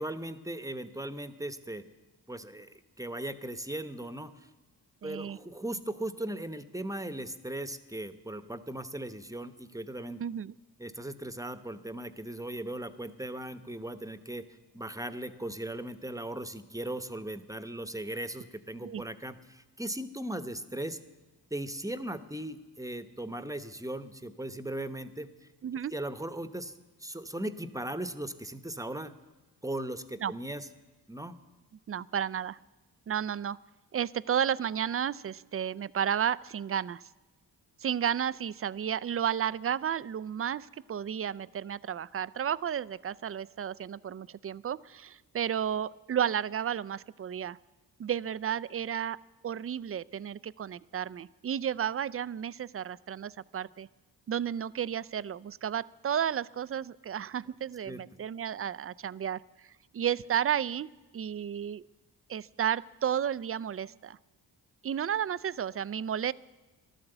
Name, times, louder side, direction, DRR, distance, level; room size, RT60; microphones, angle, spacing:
voice 1, 0.0-1.8 2.3-4.5 5.0-10.2 10.8-14.5 14.7-21.0 21.5-25.3 25.9-26.7 27.0-29.1 29.6-30.7 31.1-31.4 57.9-58.0, right 1 dB, 10° right, 11 dB, 0.9 m, -38 dB
voice 2, 5.0-5.4 10.2-10.5 18.8-19.0 25.6-25.9 30.2-30.3 31.9-32.6 33.1-33.6 33.9-37.0 37.8-47.6 48.0-49.2 49.4-53.9 54.3-59.4 59.9-60.9 61.1-61.8 62.3-64.2 64.8-66.3, right 9 dB, 35° right, 18 dB, 0.4 m, -32 dB
13.5 x 12.0 x 7.9 m, 1.2 s
cardioid pair, 60°, 42 cm